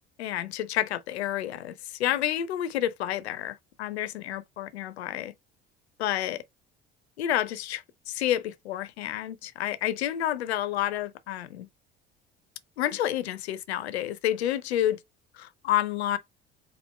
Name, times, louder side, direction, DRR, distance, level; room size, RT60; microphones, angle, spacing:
voice 1, 0.2-5.3 6.0-6.4 7.2-11.7 12.8-15.0 15.3-16.2, left 12 dB, 75° left, 0.5 m, -29 dB
4.2 x 2.6 x 4.4 m
figure-of-eight pair, 55°, 33 cm